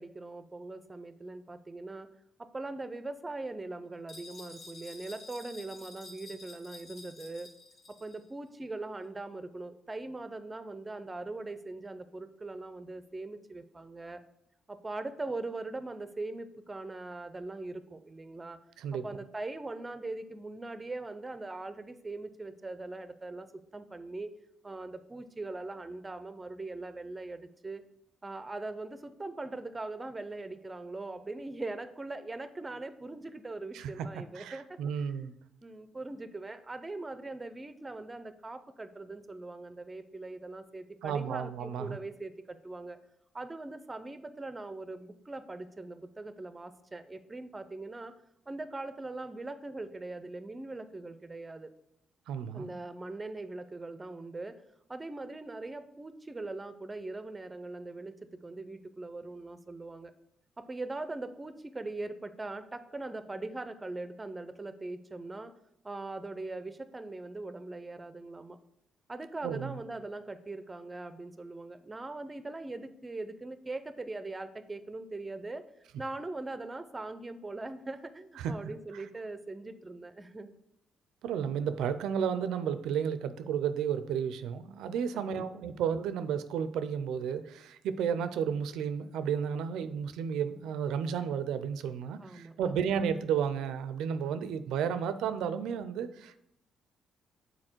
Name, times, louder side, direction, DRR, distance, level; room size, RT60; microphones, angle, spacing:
voice 1, 0.0-2.1 2.4-7.5 7.9-14.2 14.7-18.6 18.9-24.3 24.6-27.8 28.2-34.8 35.6-43.0 43.3-51.7 52.5-54.6 54.9-60.1 60.6-65.6 65.8-68.6 69.1-75.6 76.0-80.5 85.1-85.6 92.2-92.8, right 2 dB, 20° right, 12 dB, 0.5 m, -41 dB
sound 1, 4.1-8.2, left 3 dB, 60° left, 1.7 m, -50 dB
voice 2, 34.4-35.4 41.0-42.0 52.3-52.7 69.4-69.8 78.4-78.5 81.2-96.4, right 7 dB, 85° right, 12 dB, 0.4 m, -32 dB
6.6 x 4.1 x 4.4 m, 0.77 s
cardioid pair, 90°, 0 cm